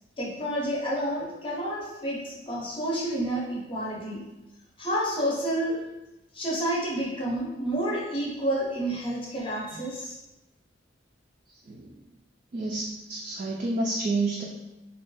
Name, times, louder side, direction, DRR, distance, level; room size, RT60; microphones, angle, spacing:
voice 1, 0.2-4.3 4.8-5.8 6.3-10.2, right 1 dB, 25° left, -4 dB, 0.6 m, -29 dB
voice 2, 11.7-12.0 12.5-14.4, right 2 dB, 40° right, -2 dB, 0.3 m, -29 dB
3.1 x 2.2 x 3.1 m, 1.0 s
head